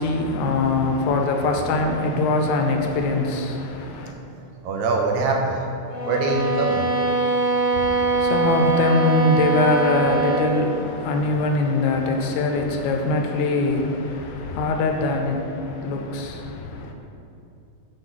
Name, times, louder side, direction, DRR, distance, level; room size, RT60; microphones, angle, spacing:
voice 1, 0.0-4.1 7.7-16.9, left 3 dB, 85° left, 2.0 m, -23 dB
voice 2, 4.6-5.7 6.1-6.8, right 3 dB, 80° right, 2.0 m, -23 dB
sound 1, 5.9-10.6, right 3 dB, 55° left, 2.1 m, -22 dB
6.1 x 3.9 x 5.9 m
omnidirectional pair, 3.4 m